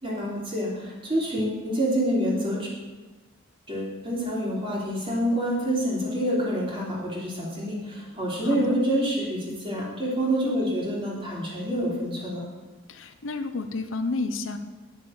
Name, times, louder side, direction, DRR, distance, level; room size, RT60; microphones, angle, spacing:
voice 1, 0.0-2.7 3.7-12.4, equal, 25° right, -5 dB, 3.4 m, -27 dB
voice 2, 8.4-8.8 10.4-10.6 12.9-14.6, left 3 dB, 80° left, 8 dB, 0.9 m, -31 dB
11.5 x 7.0 x 6.5 m, 1.3 s
head